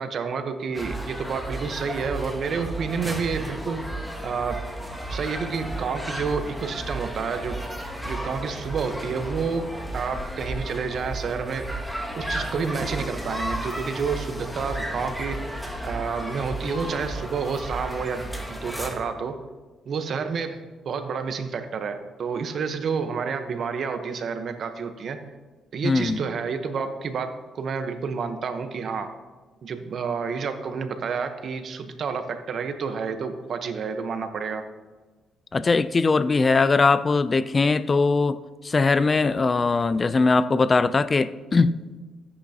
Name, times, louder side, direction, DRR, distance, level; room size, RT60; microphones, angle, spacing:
voice 1, 0.0-3.8 4.2-4.7 5.1-7.6 8.0-11.7 12.2-15.4 15.8-19.4 19.9-25.2 25.7-29.1 29.6-34.6, right 5 dB, 60° right, 8 dB, 1.0 m, -29 dB
sound 1, 0.7-18.9, right 1 dB, ahead, 2.0 m, -33 dB
voice 2, 25.8-26.2 35.5-41.8, left 4 dB, 30° left, 15 dB, 0.4 m, -21 dB
14.0 x 9.8 x 2.9 m, 1.3 s
cardioid pair, 90°, 0 cm